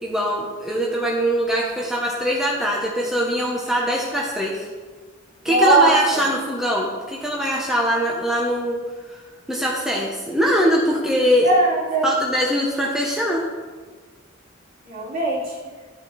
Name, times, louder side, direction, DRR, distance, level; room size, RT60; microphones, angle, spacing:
voice 1, 0.0-4.7 5.4-8.8 9.1-9.2 9.5-11.5 12.0-13.4, equal, ahead, -3 dB, 1.4 m, -22 dB
voice 2, 5.5-6.2 11.4-12.1 14.9-15.6, right 2 dB, 50° right, -5 dB, 3.6 m, -19 dB
13.0 x 9.6 x 4.4 m, 1.4 s
head